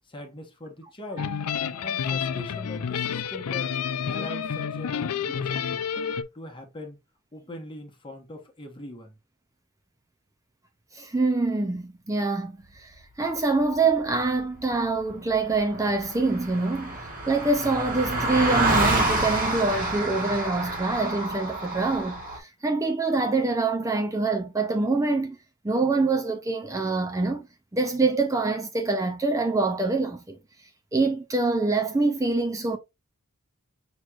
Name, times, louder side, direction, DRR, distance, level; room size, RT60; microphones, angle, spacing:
voice 1, 0.1-1.3 1.8-3.7 4.1-5.7 6.3-7.0 7.3-9.2, left 1 dB, 25° left, 1.1 m, -41 dB
sound 1, 1.2-6.2, left 7 dB, 85° left, 0.5 m, -29 dB
voice 2, 10.9-25.4 25.6-27.5 27.7-30.4 30.9-32.8, right 3 dB, 15° right, 0.4 m, -25 dB
Car passing by, 15.3-15.4 15.5-22.4, right 2 dB, 40° right, 1.7 m, -28 dB
6.2 x 3.0 x 2.4 m
head